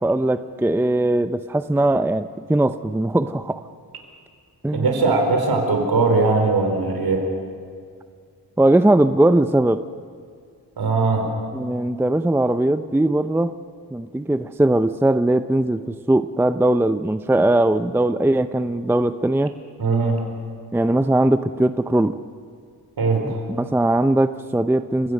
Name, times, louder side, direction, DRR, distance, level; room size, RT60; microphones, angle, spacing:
voice 1, 0.0-3.6 4.6-4.9 8.6-9.8 11.5-13.6 13.9-19.5 20.7-22.2 23.2-25.1, right 1 dB, 5° right, 11 dB, 0.6 m, -20 dB
voice 2, 4.7-7.3 10.8-11.3 19.8-20.2 23.0-23.4, right 3 dB, 65° right, 3 dB, 4.5 m, -20 dB
30.0 x 17.0 x 6.6 m, 2.2 s
cardioid pair, 90°, 39 cm